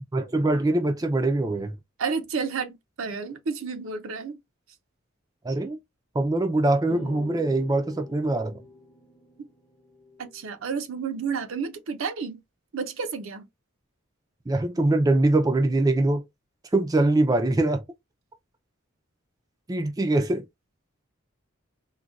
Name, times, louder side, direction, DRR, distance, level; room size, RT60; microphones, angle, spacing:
voice 1, 0.1-1.8 5.4-5.8 6.1-8.6 14.5-16.2 16.7-17.8 19.7-20.4, right 2 dB, 15° right, 0.3 m, -23 dB
voice 2, 2.0-4.4 10.2-12.4 12.7-13.5, right 5 dB, 75° right, 0.5 m, -31 dB
sound 1, 6.9-10.4, left 1 dB, 25° left, 0.6 m, -44 dB
3.9 x 2.1 x 2.3 m
head